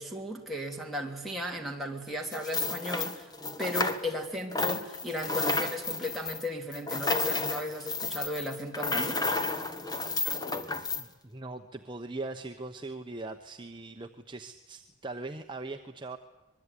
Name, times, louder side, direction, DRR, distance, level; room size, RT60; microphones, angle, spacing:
voice 1, 0.0-3.3 3.6-9.2, left 1 dB, ahead, 3 dB, 3.1 m, -35 dB
sound 1, 2.3-4.3 4.5-11.0, left 3 dB, 20° left, 1.4 m, -32 dB
voice 2, 10.9-16.2, right 2 dB, 20° right, 5 dB, 0.9 m, -40 dB
25.0 x 21.5 x 9.9 m, 1.0 s
head